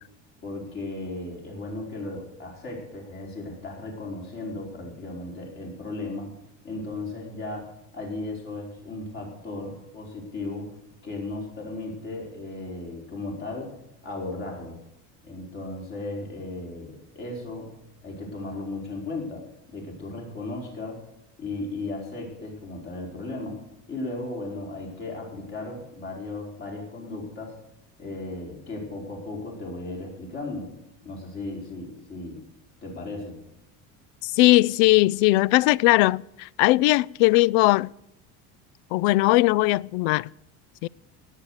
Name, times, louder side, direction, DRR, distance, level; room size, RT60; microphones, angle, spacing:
voice 1, 0.4-6.3 6.6-10.8 11.0-13.7 14.0-14.8 15.2-17.7 18.0-19.4 19.7-21.0 21.4-23.6 23.9-27.6 28.0-30.7 31.0-32.4 32.8-33.4, left 2 dB, 35° left, 4.9 m, -36 dB
voice 2, 34.2-37.9 38.9-40.3 40.8-40.9, left 19 dB, 80° left, 0.5 m, -19 dB
17.5 x 8.9 x 6.5 m
cardioid pair, 175°, 34 cm